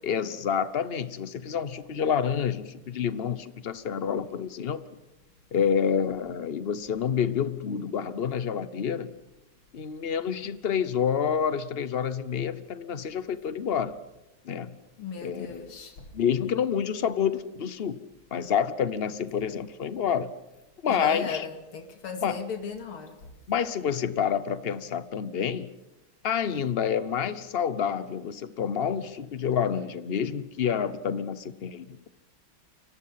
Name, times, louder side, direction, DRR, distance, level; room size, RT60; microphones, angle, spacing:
voice 1, 0.0-4.8 5.5-9.1 9.7-14.0 14.4-14.8 15.2-15.7 16.1-18.0 18.3-20.3 20.8-21.5 22.2-22.4 23.5-25.7 26.2-32.1, left 7 dB, 50° left, 14 dB, 0.7 m, -28 dB
voice 2, 15.0-16.1 20.9-23.3, left 5 dB, 85° left, 6 dB, 3.1 m, -36 dB
29.0 x 24.5 x 5.8 m, 0.98 s
omnidirectional pair, 2.3 m